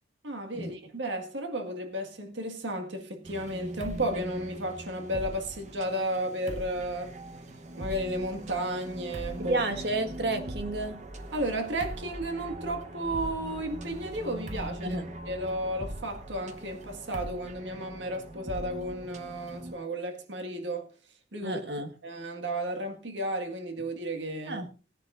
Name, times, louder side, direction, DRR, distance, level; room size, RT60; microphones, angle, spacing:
voice 1, 0.2-7.2 7.8-9.6 11.3-20.9 21.3-21.6 22.0-24.7, right 1 dB, 90° right, 1.9 m, -33 dB
sound 1, 3.2-19.7, right 1 dB, 40° right, 1.0 m, -41 dB
voice 2, 9.4-11.0 14.8-15.1 21.4-21.9 24.5-24.7, right 2 dB, 65° right, 1.7 m, -31 dB
19.5 x 10.5 x 2.6 m
head